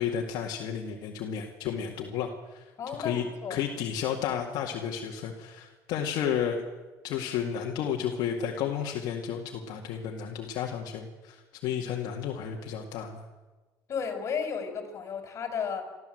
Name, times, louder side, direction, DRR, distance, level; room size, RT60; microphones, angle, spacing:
voice 1, 0.0-2.6 3.0-3.2 3.5-6.6 7.0-13.2, left 8 dB, 70° left, 0 dB, 2.1 m, -32 dB
voice 2, 2.8-3.6 13.9-15.8, left 6 dB, 40° left, 6 dB, 4.9 m, -33 dB
29.0 x 13.0 x 7.9 m, 1.2 s
cardioid pair, 120°, 7 cm